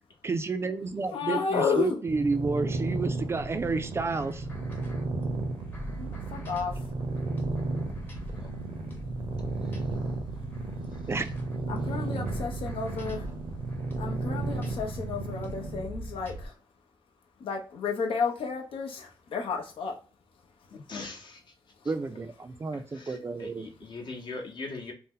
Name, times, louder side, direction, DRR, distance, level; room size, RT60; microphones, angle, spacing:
voice 1, 0.2-4.5 11.1-11.3 21.9-23.7, right 3 dB, 30° right, 9 dB, 0.3 m, -30 dB
voice 2, 1.1-2.0 6.0-6.8 11.7-13.3 14.0-16.5 17.4-20.0, left 5 dB, 85° left, 2 dB, 0.6 m, -32 dB
sound 1, 2.1-15.9, right 3 dB, 70° right, 0.6 m, -34 dB
sound 2, 3.4-16.5, right 1 dB, 20° left, 0.8 m, -42 dB
voice 3, 20.7-21.4 22.7-24.9, left 3 dB, 60° left, 1 dB, 0.9 m, -41 dB
2.7 x 2.0 x 3.6 m, 0.37 s
cardioid pair, 105°, 9 cm